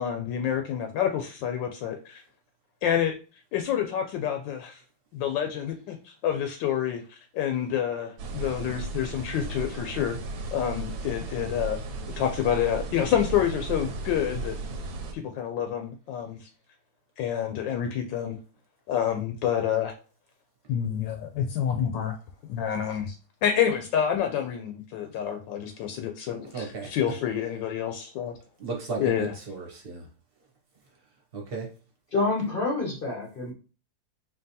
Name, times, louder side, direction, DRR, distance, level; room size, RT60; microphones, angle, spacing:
voice 1, 0.0-2.2 2.8-3.1 3.5-4.8 5.1-10.2 10.5-11.8 12.2-14.6 15.1-16.5 17.2-18.4 18.9-19.9 20.7-22.2 22.5-23.1 23.4-28.4 29.0-29.3, left 9 dB, 80° left, 5 dB, 1.2 m, -28 dB
sound 1, 8.2-15.1, right 3 dB, 90° right, 1.5 m, -35 dB
voice 2, 26.5-27.0 28.6-30.0 31.3-31.7, right 4 dB, 40° right, 0 dB, 1.0 m, -34 dB
voice 3, 32.1-33.5, left 3 dB, 45° left, -1 dB, 0.7 m, -27 dB
4.5 x 3.1 x 2.7 m, 0.35 s
omnidirectional pair, 2.0 m